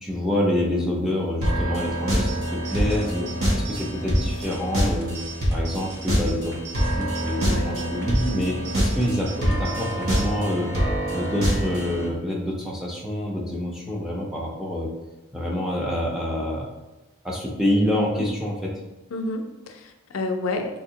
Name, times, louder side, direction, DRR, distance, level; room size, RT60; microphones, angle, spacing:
voice 1, 0.0-5.2 5.5-6.7 7.0-10.7 11.1-14.9 15.3-16.7 17.2-18.7, left 1 dB, ahead, -3 dB, 0.4 m, -27 dB
sound 1, 1.4-12.1, equal, 70° right, 0.9 m, -25 dB
sound 2, 2.3-10.3, right 5 dB, 50° right, 0.6 m, -42 dB
voice 2, 7.4-8.0 17.9-18.2 19.1-20.8, left 2 dB, 75° left, 5 dB, 0.4 m, -30 dB
3.4 x 2.7 x 2.8 m, 1.1 s
head